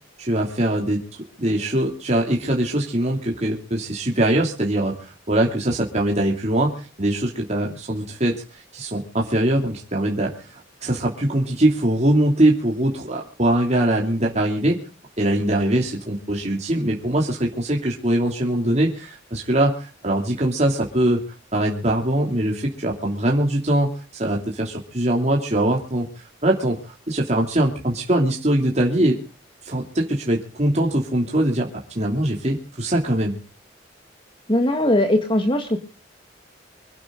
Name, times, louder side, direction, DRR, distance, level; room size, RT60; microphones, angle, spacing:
voice 1, 0.2-14.8 15.2-21.2 21.5-26.1 26.4-29.2 29.6-31.7 31.9-33.4, right 1 dB, 35° right, -1 dB, 2.8 m, -22 dB
voice 2, 34.5-35.8, left 1 dB, 25° left, 6 dB, 1.8 m, -19 dB
25.5 x 11.5 x 3.8 m, 0.38 s
head